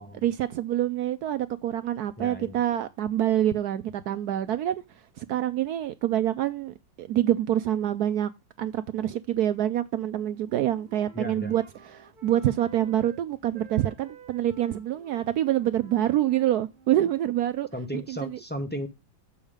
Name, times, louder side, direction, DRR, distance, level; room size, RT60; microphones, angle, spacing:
voice 1, 0.2-4.8 5.2-8.3 8.6-11.6 11.9-17.7 17.9-18.3, right 12 dB, 75° right, 0.9 m, -26 dB
voice 2, 2.2-2.6 11.1-11.5 17.7-18.9, equal, 15° left, 0.4 m, -35 dB
Wind instrument woodwind instrument, 10.1-13.2 13.5-17.3, right 5 dB, 35° right, 0.8 m, -53 dB
7.2 x 5.4 x 4.9 m
omnidirectional pair, 2.1 m